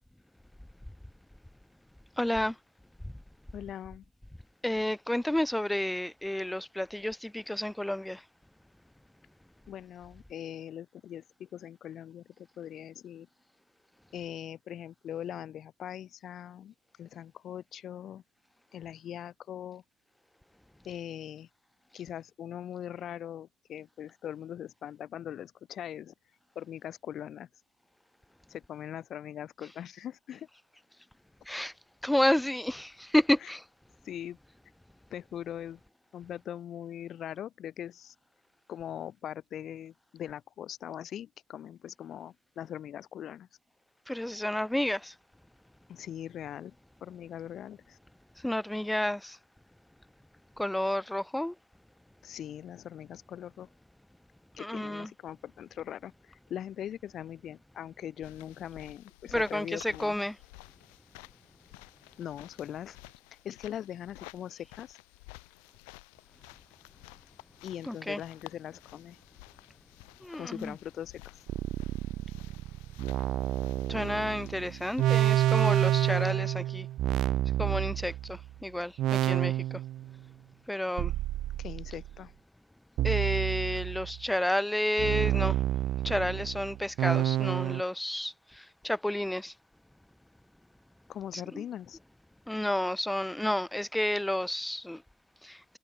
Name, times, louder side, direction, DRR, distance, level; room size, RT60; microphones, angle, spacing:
voice 1, 2.2-2.5 4.6-8.2 31.5-31.7 32.0-33.6 44.1-45.1 48.4-49.4 50.6-51.5 54.6-55.1 59.3-60.4 67.9-68.2 70.2-70.7 73.9-76.9 77.6-79.6 80.7-81.1 83.0-85.6 86.0-89.5 91.5-91.6 92.5-95.0 95.4-95.6, left 1 dB, 5° left, 0.8 m, -30 dB
voice 2, 3.5-4.0 9.7-13.3 14.1-18.2 18.7-19.8 20.8-21.5 21.9-26.1 26.5-27.5 28.5-30.5 33.4-33.5 34.0-34.4 35.1-35.8 36.1-38.1 38.7-43.5 45.9-46.7 47.0-48.0 52.2-53.7 54.6-60.1 62.2-63.0 63.4-65.0 67.6-69.2 70.3-71.4 81.6-82.3 91.1-92.0, left 10 dB, 60° left, 2.7 m, -41 dB
sound 1, 58.2-76.3, left 34 dB, 85° left, 8.0 m, -54 dB
sound 2, 71.5-78.5 79.0-80.1 81.0-82.1 83.0-84.2 85.0-87.8, right 13 dB, 70° right, 0.4 m, -29 dB
hypercardioid pair, 65°, 0 cm